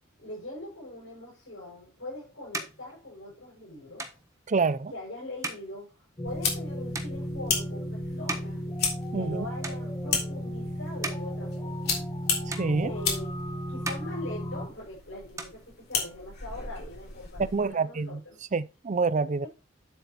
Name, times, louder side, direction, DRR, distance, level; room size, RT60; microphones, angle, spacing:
voice 1, 0.2-4.2 4.9-8.7 9.1-12.3 12.8-13.3 13.7-18.4, left 1 dB, 70° left, 6.2 m, -42 dB
sound 1, 1.7-9.3 9.6-10.3 10.7-12.2 12.5-13.4 13.7-14.9 15.2-16.3, right 2 dB, 15° right, 1.1 m, -41 dB
voice 2, 4.5-4.9 9.1-9.5 12.5-12.9 17.5-18.2 18.5-19.5, right 4 dB, 40° right, 0.5 m, -27 dB
sound 2, 6.2-14.7, equal, 25° left, 1.3 m, -35 dB
sound 3, 6.3-17.7, left 5 dB, 55° left, 3.4 m, -35 dB
9.9 x 7.9 x 3.0 m
head